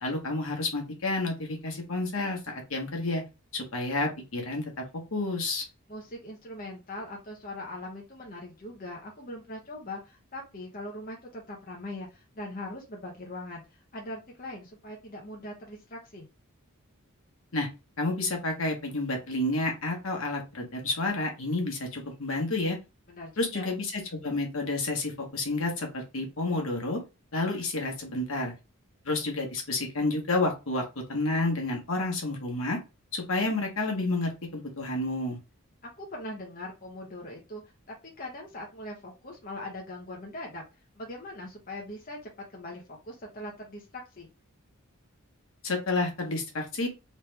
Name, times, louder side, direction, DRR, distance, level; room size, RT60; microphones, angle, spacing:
voice 1, 0.0-3.2 3.5-4.8 5.1-5.6 17.5-17.7 18.0-22.8 23.4-27.0 27.3-28.5 29.0-32.8 33.1-35.4 45.6-46.9, left 2 dB, 70° left, 1 dB, 1.2 m, -30 dB
voice 2, 5.9-16.3 23.1-23.7 36.0-37.6 37.9-40.6 40.9-44.3, left 1 dB, 40° left, -2 dB, 0.8 m, -41 dB
3.3 x 3.2 x 3.3 m, 0.28 s
head